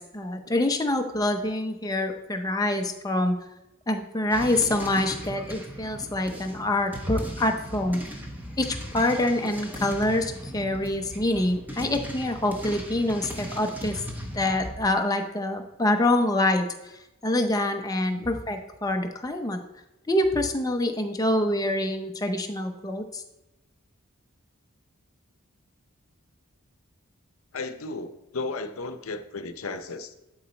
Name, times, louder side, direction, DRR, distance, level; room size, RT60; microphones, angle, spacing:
voice 1, 0.0-3.4 3.9-8.0 8.6-14.0 14.3-16.7 17.2-19.6 20.1-23.2, left 1 dB, 15° left, 5 dB, 0.6 m, -26 dB
sound 1, 4.3-14.8, equal, 10° right, 1.0 m, -38 dB
voice 2, 27.5-30.1, left 3 dB, 75° left, 9 dB, 0.7 m, -34 dB
11.5 x 4.0 x 4.4 m, 0.94 s
head